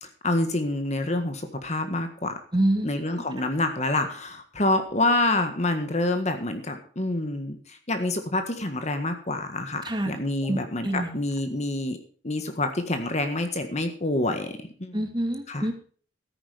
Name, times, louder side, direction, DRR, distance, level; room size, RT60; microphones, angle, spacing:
voice 1, 0.0-2.4 2.8-15.0 15.5-15.7, left 2 dB, 35° left, 7 dB, 1.6 m, -27 dB
voice 2, 2.5-2.9 9.8-10.1 10.5-11.1 14.9-15.7, right 1 dB, 25° right, 4 dB, 2.4 m, -26 dB
13.5 x 10.0 x 5.1 m, 0.44 s
head